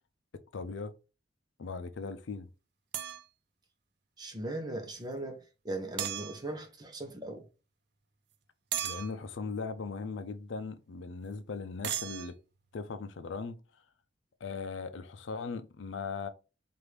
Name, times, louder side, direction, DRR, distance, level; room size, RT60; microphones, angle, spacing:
voice 1, 0.5-0.9 1.6-2.5 8.8-12.4 12.7-13.6 14.4-16.3, left 4 dB, 80° left, 0.5 m, -38 dB
sound 1, 2.9-3.2 6.0-6.4 8.7-9.1 11.8-12.3, right 11 dB, 60° right, 0.5 m, -35 dB
voice 2, 4.2-5.4 5.6-7.4, right 1 dB, 20° right, 0.8 m, -38 dB
4.8 x 2.5 x 3.3 m
head